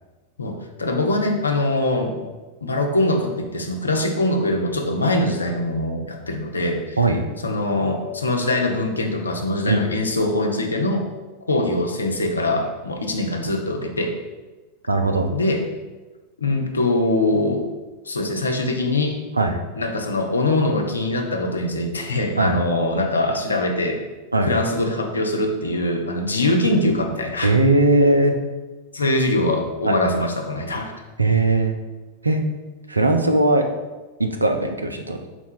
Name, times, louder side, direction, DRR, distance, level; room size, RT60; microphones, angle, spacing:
voice 1, 0.4-2.3 2.6-7.0 7.4-11.0 11.5-14.1 15.3-15.6 16.4-17.7 18.1-19.2 19.8-24.0 24.4-27.5 28.9-30.9, left 2 dB, 75° left, 3 dB, 0.5 m, -22 dB
voice 2, 14.9-15.3 19.4-19.6 22.4-22.6 24.3-24.5 27.4-28.3 29.9-30.1 31.2-31.8 32.2-32.4 32.9-33.6 34.2-35.2, right 2 dB, 80° right, 5 dB, 0.4 m, -19 dB
4.0 x 2.3 x 4.5 m, 1.2 s
figure-of-eight pair, 90°, 0 cm